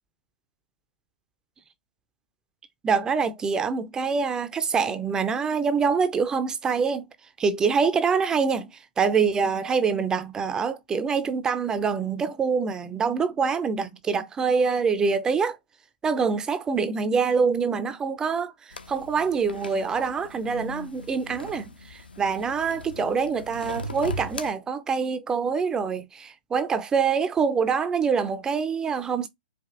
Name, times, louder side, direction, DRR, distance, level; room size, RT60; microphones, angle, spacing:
voice 1, 2.8-7.1 7.4-8.7 9.0-15.6 16.0-29.3, right 5 dB, 15° right, 0.4 m, -25 dB
sound 1, 18.7-24.5, left 1 dB, 75° left, 0.8 m, -39 dB
5.0 x 2.4 x 2.4 m
figure-of-eight pair, 115°, 5 cm